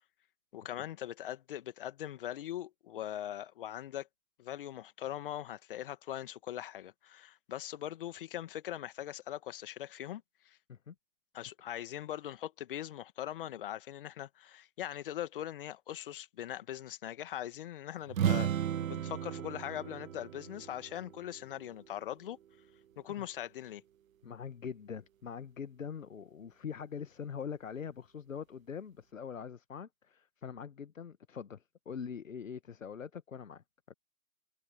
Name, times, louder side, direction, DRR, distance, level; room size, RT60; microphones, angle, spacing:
voice 1, 0.5-4.1 4.4-10.6 11.3-18.5 18.8-22.4 23.0-23.8, left 12 dB, 40° left, 2.0 m, -41 dB
sound 1, 18.1-21.8, right 10 dB, 70° right, 0.5 m, -35 dB
voice 2, 24.2-33.9, left 7 dB, 65° left, 1.5 m, -43 dB
figure-of-eight pair, 130°, 43 cm